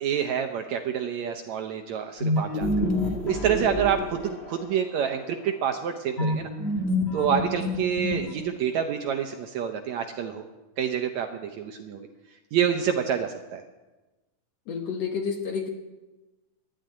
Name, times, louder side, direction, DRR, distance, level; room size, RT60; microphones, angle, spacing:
voice 1, 0.0-2.9 3.3-6.5 7.1-10.4 10.8-12.1 12.5-13.6, right 8 dB, 75° right, 5 dB, 1.7 m, -27 dB
sound 1, 2.2-4.8 6.2-8.6, left 1 dB, 40° left, 0.9 m, -28 dB
voice 2, 14.7-15.7, left 6 dB, 65° left, 4 dB, 1.8 m, -30 dB
11.5 x 11.5 x 9.3 m, 1.1 s
omnidirectional pair, 4.0 m